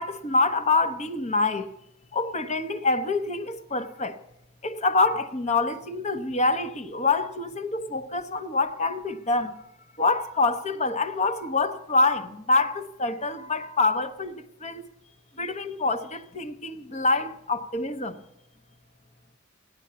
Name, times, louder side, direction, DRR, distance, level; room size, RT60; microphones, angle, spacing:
voice 1, 0.0-1.7 2.1-4.2 4.6-9.6 10.0-14.9 15.4-18.2, left 3 dB, 35° left, 1.0 m, -26 dB
15.5 x 10.5 x 8.5 m
head